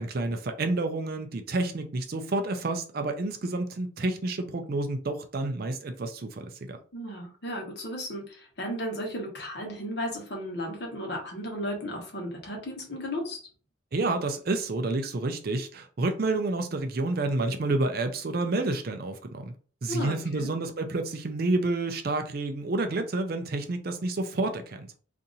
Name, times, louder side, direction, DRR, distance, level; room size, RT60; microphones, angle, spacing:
voice 1, 0.0-6.8 13.9-19.5 19.8-24.9, right 2 dB, 50° right, 0.4 m, -29 dB
voice 2, 6.9-13.4 19.9-20.5, equal, 55° left, 1.1 m, -34 dB
2.8 x 2.5 x 3.8 m
head